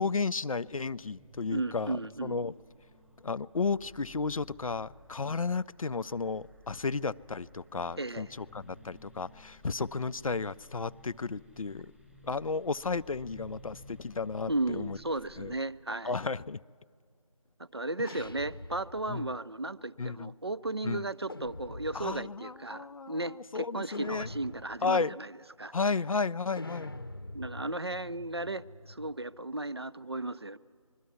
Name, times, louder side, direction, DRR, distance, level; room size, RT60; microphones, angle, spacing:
voice 1, 0.0-2.5 3.2-11.9 12.2-15.0 15.4-15.5 16.0-16.6 19.1-19.3 20.0-20.3 20.8-21.1 21.9-24.3 24.8-25.2 25.7-27.0, left 4 dB, 70° left, 0.4 m, -33 dB
sound 1, 0.6-15.6, equal, ahead, 1.0 m, -55 dB
voice 2, 1.5-2.4 8.0-8.3 14.5-16.2 17.6-25.3 25.6-25.7 27.3-30.6, right 2 dB, 45° right, 0.4 m, -35 dB
sound 2, 18.1-19.4 21.3-22.4 23.9-25.0 26.6-29.2, left 1 dB, 40° left, 0.7 m, -45 dB
21.5 x 12.5 x 9.6 m
figure-of-eight pair, 170°, 18 cm